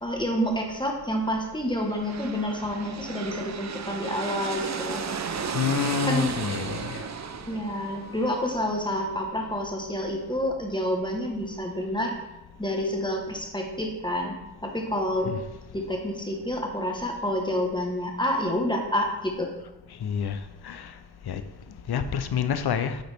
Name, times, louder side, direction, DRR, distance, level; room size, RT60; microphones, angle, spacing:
voice 1, 0.0-5.0 6.0-6.3 7.5-12.2 12.6-14.3 14.6-15.3 15.7-19.5, equal, 10° left, 1 dB, 1.4 m, -28 dB
sound 1, 1.7-9.4, right 6 dB, 45° right, 0.6 m, -35 dB
voice 2, 5.5-7.0 15.3-15.4 20.0-20.4 20.6-20.9 21.3-21.4 21.9-23.0, left 7 dB, 70° left, 10 dB, 0.7 m, -27 dB
9.3 x 3.8 x 3.5 m, 0.96 s
cardioid pair, 50°, 40 cm